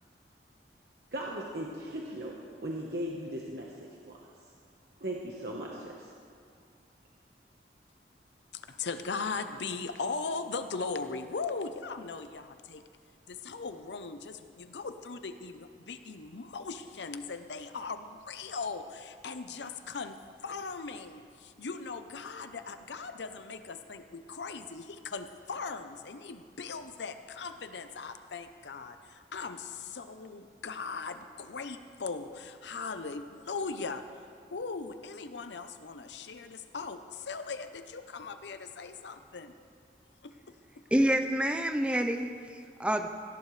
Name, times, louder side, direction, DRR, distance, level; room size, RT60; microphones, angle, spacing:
voice 1, 1.1-2.4 2.6-4.1 5.0-6.1, right 1 dB, 65° right, -2 dB, 1.2 m, -38 dB
voice 2, 8.5-12.8 13.3-34.0 34.5-39.5 40.2-40.5, left 4 dB, 85° left, 9 dB, 0.7 m, -39 dB
voice 3, 40.9-43.1, right 1 dB, 5° right, 6 dB, 0.6 m, -28 dB
18.0 x 14.5 x 3.3 m, 2.4 s
head